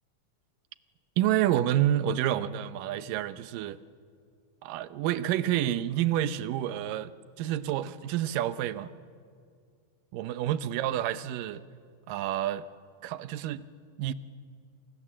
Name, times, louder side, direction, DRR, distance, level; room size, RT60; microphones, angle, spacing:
voice 1, 1.2-3.8 4.6-7.1 7.4-8.9 10.1-11.6 12.1-12.7 13.0-13.6 14.0-14.1, right 12 dB, 75° right, 14 dB, 2.4 m, -28 dB
30.0 x 26.5 x 7.5 m, 2.2 s
omnidirectional pair, 4.0 m